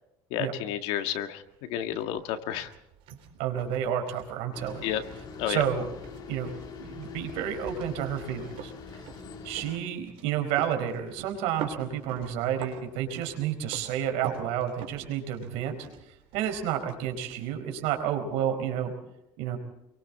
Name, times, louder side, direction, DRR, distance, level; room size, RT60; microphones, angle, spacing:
voice 1, 0.3-2.7 4.8-5.0 5.4-5.6, left 11 dB, 80° left, 7 dB, 1.8 m, -31 dB
sound 1, 1.4-18.4, right 9 dB, 65° right, 3.8 m, -46 dB
voice 2, 3.4-5.0 5.5-5.9 6.3-6.5 6.8-8.7 9.4-15.9 16.3-18.9 19.4-19.6, right 9 dB, 80° right, 5 dB, 4.5 m, -30 dB
sound 2, 4.5-9.8, left 5 dB, 45° left, 2.8 m, -43 dB
28.0 x 23.0 x 4.3 m, 0.87 s
cardioid pair, 155°, 10 cm